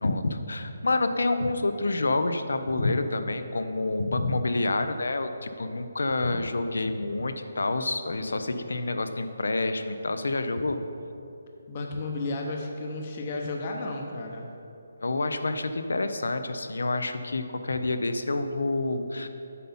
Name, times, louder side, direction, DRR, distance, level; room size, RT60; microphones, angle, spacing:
voice 1, 0.0-10.8 15.0-19.3, left 2 dB, 85° left, 9 dB, 0.6 m, -28 dB
voice 2, 11.7-14.4, left 2 dB, 30° left, 1 dB, 0.8 m, -33 dB
8.3 x 5.4 x 5.5 m, 2.8 s
hypercardioid pair, 170°, 0 cm